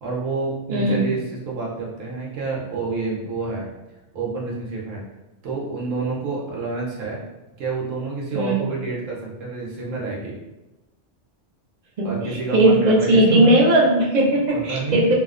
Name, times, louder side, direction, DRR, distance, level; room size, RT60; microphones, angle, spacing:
voice 1, 0.0-3.7 4.1-5.0 5.4-7.2 7.6-10.4 12.0-13.5 14.7-15.1, right 3 dB, 90° right, -3 dB, 1.0 m, -28 dB
voice 2, 0.7-1.0 8.3-8.6 12.0-15.1, right 1 dB, 65° right, -4 dB, 0.4 m, -18 dB
2.7 x 2.0 x 2.4 m, 1.0 s
omnidirectional pair, 1.3 m